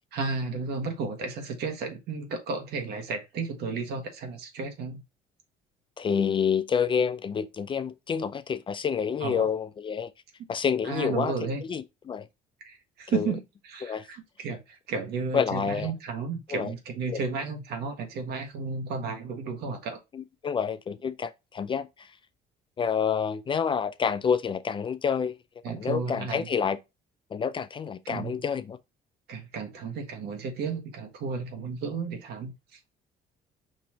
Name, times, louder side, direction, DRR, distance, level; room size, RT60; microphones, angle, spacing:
voice 1, 0.1-5.0 9.2-9.5 10.8-11.6 12.6-20.0 25.6-26.5 28.0-28.3 29.3-32.9, right 4 dB, 75° right, 1.5 m, -33 dB
voice 2, 6.0-10.1 10.5-11.3 11.6-12.3 13.1-13.3 13.8-14.0 15.3-15.9 16.5-16.7 17.1-17.2 20.1-22.1 22.8-25.3 25.8-26.8 27.3-28.8, left 7 dB, 30° left, 0.4 m, -28 dB
5.5 x 2.9 x 2.8 m
cardioid pair, 110°, 17 cm